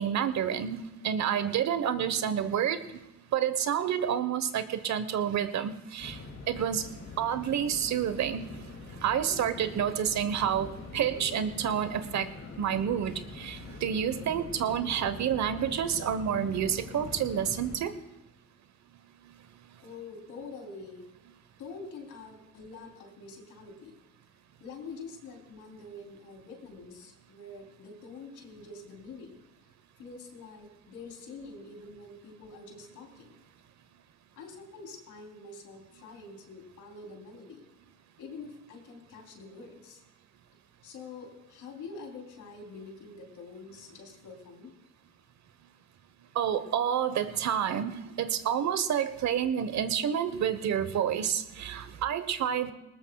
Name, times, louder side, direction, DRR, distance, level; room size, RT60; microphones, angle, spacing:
voice 1, 0.0-2.8 3.3-6.2 6.5-6.9 7.2-8.5 9.0-12.3 12.6-17.9 46.3-52.7, right 9 dB, 65° right, 12 dB, 1.1 m, -29 dB
sound 1, 6.0-17.8, left 4 dB, 55° left, 2.5 m, -44 dB
voice 2, 19.8-21.1 21.6-23.9 24.6-29.4 30.0-33.4 34.3-37.6 38.2-40.0 40.8-44.7, left 3 dB, 85° left, 1 dB, 3.4 m, -46 dB
20.0 x 19.5 x 2.3 m, 0.97 s
cardioid pair, 90°, 30 cm